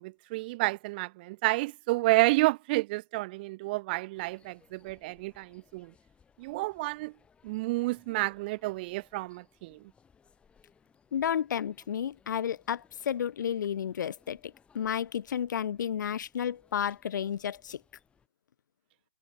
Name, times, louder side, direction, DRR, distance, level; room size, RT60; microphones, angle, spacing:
voice 1, 0.0-5.9 6.4-7.1 7.4-9.8, right 21 dB, 30° right, 0.4 m, -30 dB
sound 1, 4.1-18.3, left 6 dB, 10° left, 7.5 m, -65 dB
voice 2, 11.1-14.4 14.7-17.8, left 9 dB, 70° left, 0.6 m, -32 dB
hypercardioid pair, 150°, 11 cm